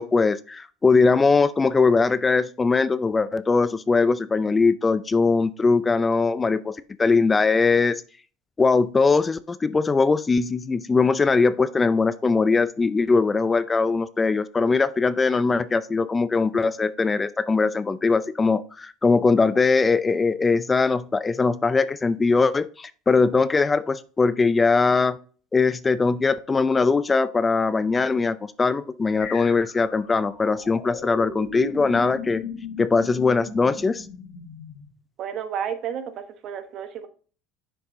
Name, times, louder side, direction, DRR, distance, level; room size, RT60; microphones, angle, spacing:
voice 1, 0.0-8.0 8.6-25.2 25.5-32.4 32.8-34.1, left 4 dB, 20° left, 0.4 m, -21 dB
sound 1, 29.2-34.9, left 4 dB, 65° left, 2.3 m, -37 dB
voice 2, 35.2-36.1 36.4-37.1, right 8 dB, 55° right, 1.0 m, -31 dB
6.6 x 4.6 x 3.7 m
supercardioid pair, 90°, 0 cm